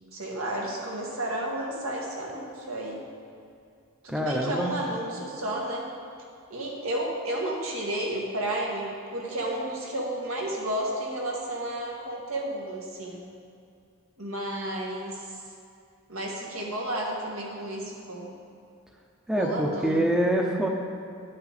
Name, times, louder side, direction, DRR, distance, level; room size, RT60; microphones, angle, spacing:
voice 1, 0.1-3.0 4.0-5.9 6.5-13.2 14.2-15.3 16.1-18.3 19.3-20.1, right 1 dB, 85° right, -2 dB, 1.8 m, -32 dB
voice 2, 4.1-4.7 19.3-20.7, right 1 dB, 5° right, 0 dB, 0.6 m, -25 dB
11.0 x 8.6 x 4.1 m, 2.4 s
head